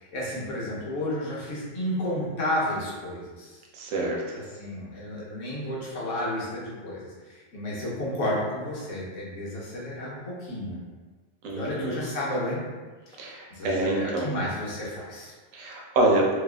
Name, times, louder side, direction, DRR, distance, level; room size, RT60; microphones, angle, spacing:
voice 1, 0.0-3.6 4.3-10.8 11.5-12.6 13.1-15.3, left 1 dB, 70° left, -6 dB, 1.1 m, -32 dB
voice 2, 3.7-4.2 11.4-12.0 13.2-14.3 15.5-16.3, right 2 dB, 90° right, -1 dB, 1.0 m, -26 dB
2.8 x 2.3 x 2.4 m, 1.3 s
omnidirectional pair, 1.3 m